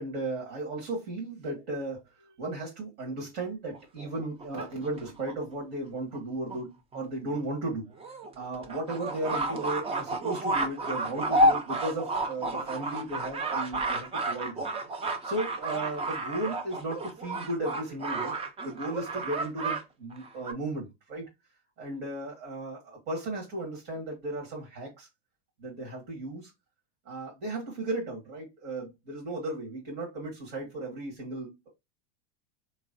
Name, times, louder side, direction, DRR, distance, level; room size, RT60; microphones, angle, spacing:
voice 1, 0.0-7.9 8.3-14.6 15.2-18.3 18.6-21.2 21.8-25.1 25.6-26.5 27.0-31.5, right 2 dB, 50° right, 1.6 m, -35 dB
sound 1, 3.7-5.3 6.1-6.2 6.5-6.6 6.9-7.0 7.3-7.4 8.0-19.8 20.1-20.5, right 1 dB, 20° right, 0.5 m, -31 dB
3.3 x 3.1 x 2.5 m
supercardioid pair, 115°, 31 cm